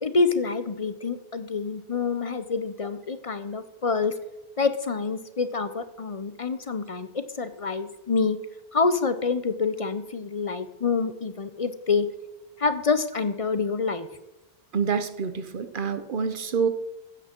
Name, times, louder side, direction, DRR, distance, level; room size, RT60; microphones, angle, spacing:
voice 1, 0.0-4.1 4.6-8.4 8.7-12.1 12.6-14.1, left 4 dB, 40° left, 11 dB, 0.6 m, -27 dB
voice 2, 14.7-16.7, right 6 dB, 55° right, 11 dB, 0.9 m, -27 dB
15.5 x 8.0 x 4.4 m, 0.97 s
omnidirectional pair, 1.1 m